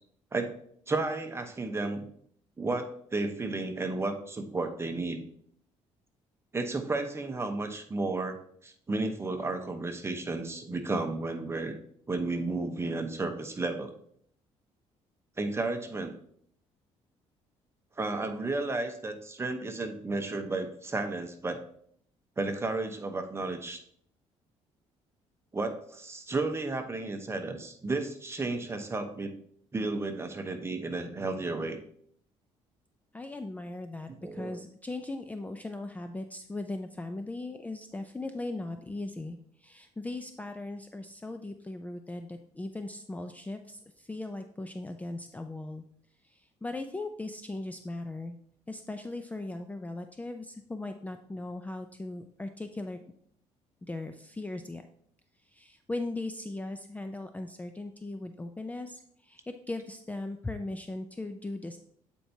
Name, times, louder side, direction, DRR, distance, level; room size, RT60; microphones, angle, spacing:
voice 1, 0.9-2.0 2.6-5.2 6.5-8.4 8.6-11.7 12.1-13.9 15.4-16.1 18.0-21.6 22.4-23.8 25.5-29.3 29.7-31.8 34.2-34.6, right 3 dB, 20° right, 6 dB, 0.9 m, -33 dB
voice 2, 33.1-45.8 46.2-48.4 48.7-53.0 53.8-54.8 55.5-61.8, left 2 dB, 10° left, 7 dB, 0.4 m, -38 dB
8.4 x 4.5 x 2.8 m, 0.65 s
cardioid pair, 90°, 12 cm